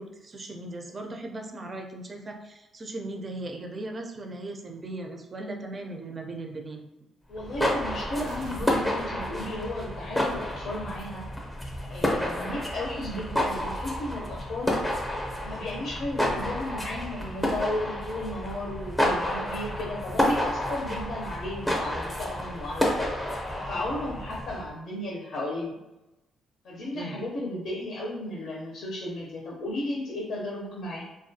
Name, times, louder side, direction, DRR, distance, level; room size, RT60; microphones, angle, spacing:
voice 1, 0.0-6.8 26.9-27.2, right 2 dB, 35° right, 3 dB, 0.4 m, -38 dB
voice 2, 7.3-11.2 11.9-14.7 15.4-23.0 23.5-25.8 26.6-31.0, left 1 dB, 65° left, -4 dB, 0.6 m, -34 dB
sound 1, 7.3-24.7, left 1 dB, 10° left, 0.6 m, -30 dB
sound 2, 8.2-10.3, right 3 dB, 90° right, 0.5 m, -47 dB
2.4 x 2.2 x 2.7 m, 0.98 s
cardioid pair, 90°, 0 cm